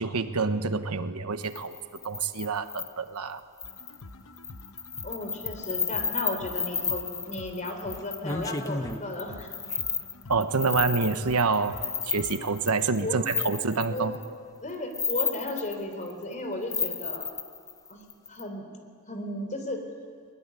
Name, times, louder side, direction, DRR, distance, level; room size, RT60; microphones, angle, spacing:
voice 1, 0.0-1.8 2.0-3.4 10.3-11.8 12.0-14.1, right 4 dB, 80° right, 10 dB, 1.2 m, -27 dB
sound 1, 1.5-2.9 3.6-4.0 4.4-14.3 14.7-16.3 16.7-18.4, left 5 dB, 15° left, 1.1 m, -32 dB
sound 2, 3.6-12.6, left 2 dB, 65° left, 1.0 m, -47 dB
voice 2, 5.0-9.5 13.0-13.3 13.9-14.3 14.6-17.3 17.9-18.0 18.3-18.7 19.1-19.8, left 1 dB, 35° left, 5 dB, 3.8 m, -35 dB
22.0 x 21.0 x 9.8 m, 2.2 s
head